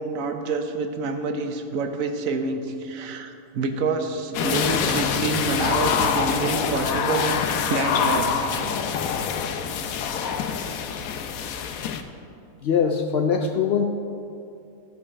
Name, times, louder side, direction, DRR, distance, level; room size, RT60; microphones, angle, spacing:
voice 1, 0.0-7.4 7.7-8.4, right 4 dB, 75° right, 6 dB, 1.1 m, -27 dB
sound 1, 4.3-12.0, left 7 dB, 85° left, 1.1 m, -25 dB
voice 2, 12.6-13.8, left 6 dB, 65° left, 5 dB, 0.6 m, -22 dB
13.5 x 5.6 x 4.9 m, 2.7 s
omnidirectional pair, 1.5 m